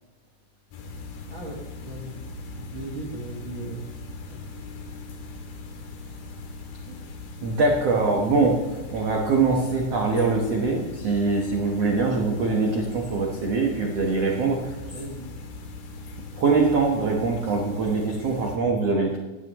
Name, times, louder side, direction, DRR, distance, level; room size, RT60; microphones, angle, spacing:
sound 1, 0.7-18.6, left 3 dB, 65° left, 3.2 m, -40 dB
voice 1, 1.3-3.8 4.3-4.4 6.8-7.0 14.0-14.4 14.9-15.3, right 1 dB, 60° right, -2 dB, 1.3 m, -38 dB
voice 2, 7.4-8.6 8.9-14.6 16.4-19.2, right 3 dB, 85° right, -1 dB, 1.3 m, -23 dB
17.5 x 10.5 x 3.1 m, 1.2 s
omnidirectional pair, 5.0 m